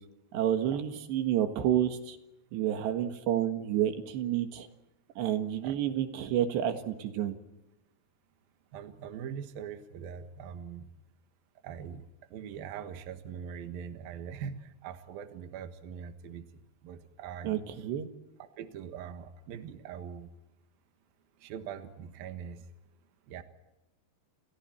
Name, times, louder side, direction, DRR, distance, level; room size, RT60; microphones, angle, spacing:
voice 1, 0.3-2.2 2.5-4.7 5.2-7.4 17.4-18.1, right 11 dB, 85° right, 7 dB, 3.8 m, -29 dB
voice 2, 8.7-10.9 11.6-17.6 18.4-20.3 21.4-22.7 23.3-23.4, right 8 dB, 65° right, 8 dB, 3.1 m, -42 dB
30.0 x 29.0 x 4.5 m, 0.96 s
omnidirectional pair, 4.9 m